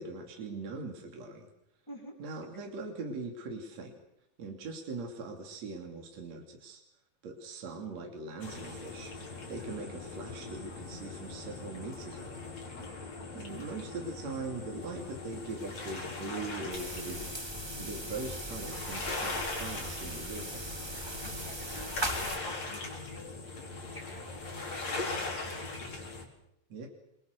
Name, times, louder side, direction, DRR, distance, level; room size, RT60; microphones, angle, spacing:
voice 1, 0.0-1.5 2.2-3.9 4.4-6.8 7.2-12.5 13.3-20.7 26.7-26.9, right 3 dB, 55° right, 2 dB, 4.0 m, -41 dB
sound 1, 8.4-26.2, left 3 dB, 55° left, 5.9 m, -40 dB
voice 2, 12.7-13.3 21.2-23.4 23.9-26.3, left 2 dB, 5° left, 1 dB, 6.5 m, -50 dB
sound 2, 16.7-22.4, right 1 dB, 15° right, 1.2 m, -39 dB
28.0 x 25.0 x 6.6 m, 0.80 s
omnidirectional pair, 3.8 m